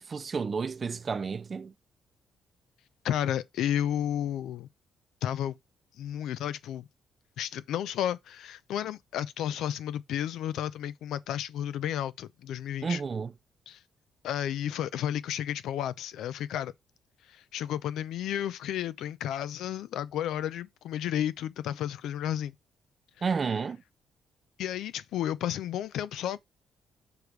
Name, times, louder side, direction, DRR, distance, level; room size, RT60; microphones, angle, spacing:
voice 1, 0.0-1.7 12.8-13.3 23.2-23.8, right 5 dB, 35° right, 0.5 m, -31 dB
voice 2, 3.0-4.7 5.2-5.6 6.0-6.9 7.4-13.0 13.7-13.8 14.2-16.7 17.3-22.5 24.6-26.4, left 10 dB, 85° left, 0.5 m, -32 dB
6.9 x 3.2 x 4.6 m
cardioid pair, 105°, 0 cm